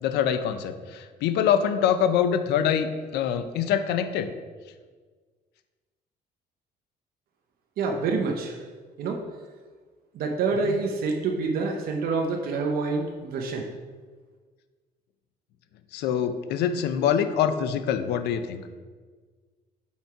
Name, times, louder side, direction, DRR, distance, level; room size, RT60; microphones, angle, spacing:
voice 1, 0.0-4.3 10.6-10.8 15.9-18.6, left 8 dB, 80° left, 10 dB, 0.6 m, -25 dB
voice 2, 7.8-8.6 9.0-9.2 10.1-13.6, right 4 dB, 65° right, 2 dB, 0.8 m, -27 dB
5.7 x 4.3 x 4.6 m, 1.5 s
cardioid pair, 110°, 17 cm